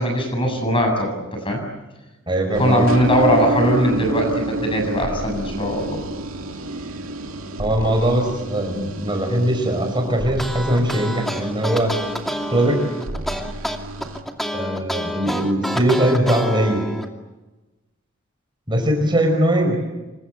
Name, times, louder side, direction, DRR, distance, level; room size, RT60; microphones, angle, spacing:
voice 1, 0.0-1.6 2.6-6.0, equal, 25° left, 4 dB, 7.3 m, -20 dB
voice 2, 2.3-2.8 7.6-11.9 12.5-12.8 14.5-16.9 18.7-19.8, right 1 dB, 25° right, 4 dB, 5.0 m, -20 dB
sound 1, 2.5-14.2, right 2 dB, 80° right, 2.5 m, -30 dB
sound 2, 10.3-17.1, equal, ahead, 2.4 m, -28 dB
27.5 x 25.0 x 8.2 m, 1.1 s
head